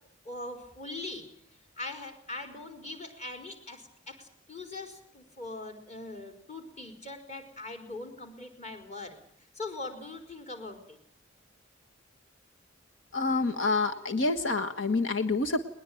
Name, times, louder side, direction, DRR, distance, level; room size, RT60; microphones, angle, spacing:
voice 1, 0.2-9.2 9.5-11.0, left 2 dB, 35° left, 6 dB, 4.5 m, -41 dB
voice 2, 13.1-15.7, left 3 dB, 85° left, 6 dB, 1.5 m, -27 dB
21.0 x 21.0 x 9.3 m, 0.64 s
head